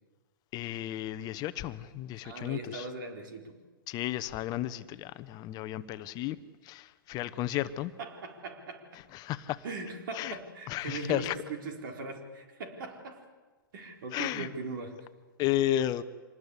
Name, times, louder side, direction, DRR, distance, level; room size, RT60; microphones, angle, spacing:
voice 1, 0.5-2.9 3.9-7.9 9.1-9.6 10.1-10.4 10.7-11.4 14.1-14.5 15.4-16.0, left 13 dB, 35° left, 0.9 m, -33 dB
voice 2, 2.2-3.6 8.0-9.0 9.6-13.2 13.7-15.0, right 3 dB, 65° right, 4.2 m, -40 dB
25.5 x 20.0 x 8.3 m
hypercardioid pair, 115°, 12 cm